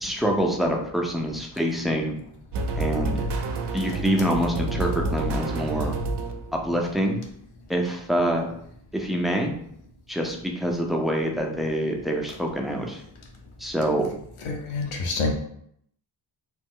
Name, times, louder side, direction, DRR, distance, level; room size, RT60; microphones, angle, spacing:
voice 1, 0.0-2.2 2.8-3.2 3.7-6.0 6.5-7.2 7.7-8.5 8.9-9.5 10.1-13.0 13.6-14.1, equal, ahead, 1 dB, 0.3 m, -25 dB
sound 1, 2.5-6.7, right 2 dB, 60° right, 0.5 m, -28 dB
voice 2, 14.4-15.3, left 3 dB, 85° left, 2 dB, 0.8 m, -27 dB
3.1 x 2.0 x 3.6 m, 0.68 s
wide cardioid pair, 110°, 49 cm